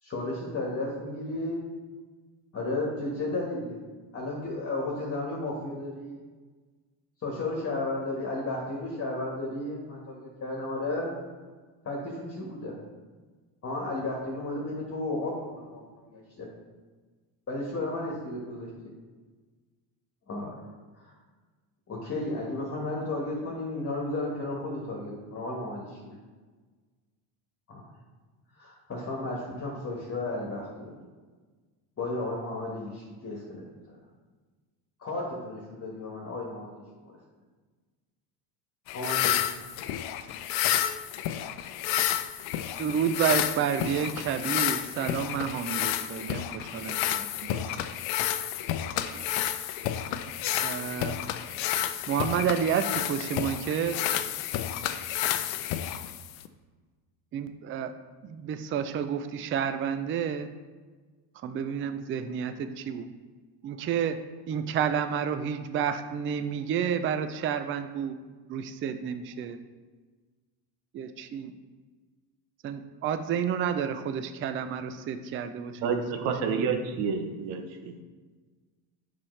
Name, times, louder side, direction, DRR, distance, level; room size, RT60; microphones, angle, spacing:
voice 1, 0.0-1.6 2.5-3.8 4.1-6.2 7.2-11.1 11.8-12.7 13.6-16.5 17.5-18.7 20.3-20.5 21.0-21.1 21.9-26.0 27.7-27.8 28.6-31.0 32.0-34.0 35.0-36.7 37.0-37.2 38.9-39.4, left 2 dB, 30° left, -2 dB, 1.5 m, -33 dB
sound 1, 38.9-56.5, left 12 dB, 75° left, 0.6 m, -30 dB
voice 2, 42.8-47.6 49.1-49.3 50.6-51.2 52.1-54.0 57.3-57.9 58.2-60.5 61.4-63.0 63.6-64.2 64.5-68.1 68.5-69.6 70.9-71.5 72.6-76.7, right 8 dB, 30° right, 9 dB, 0.4 m, -30 dB
voice 3, 75.8-77.6, right 5 dB, 75° right, 5 dB, 1.0 m, -28 dB
7.2 x 5.6 x 3.2 m, 1.4 s
supercardioid pair, 105°, 48 cm